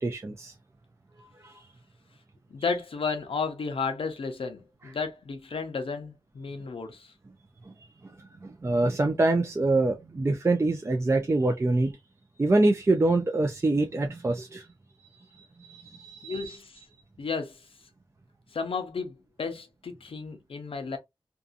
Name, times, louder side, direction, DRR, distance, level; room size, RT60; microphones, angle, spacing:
voice 1, 0.0-0.5 1.4-1.6 7.7-7.8 8.0-8.1 8.4-12.0 12.4-14.7 15.4-16.6, right 2 dB, 30° right, 0.4 m, -25 dB
voice 2, 2.5-7.1 16.2-16.8 17.2-17.7 18.5-21.0, left 4 dB, 90° left, 0.7 m, -33 dB
2.6 x 2.4 x 2.4 m
wide cardioid pair, 100°, 9 cm